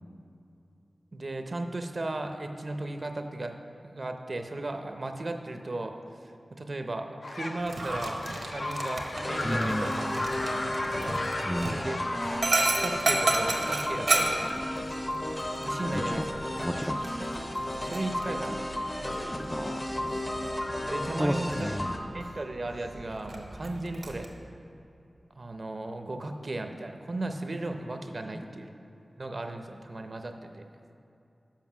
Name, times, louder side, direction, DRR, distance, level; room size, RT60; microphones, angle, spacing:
voice 1, 1.1-3.6 3.8-5.9 6.5-11.2 11.8-14.3 15.6-16.2 17.1-17.5 17.7-18.8 20.9-21.7 22.1-24.3 25.4-28.7 29.2-30.7, right 2 dB, 55° right, 6 dB, 0.6 m, -36 dB
sound 1, 7.2-12.4, left 2 dB, 70° left, 0.6 m, -35 dB
Dog, 7.6-24.3, right 2 dB, 85° right, 0.9 m, -34 dB
sound 2, 9.1-22.0, left 1 dB, 35° left, 0.8 m, -34 dB
voice 2, 9.4-9.9 11.4-11.8 15.9-16.3 16.6-17.0 19.4-20.2 21.2-22.0 28.3-28.4, equal, ahead, 6 dB, 0.3 m, -32 dB
7.4 x 5.2 x 6.0 m, 2.7 s
wide cardioid pair, 60°, 0 cm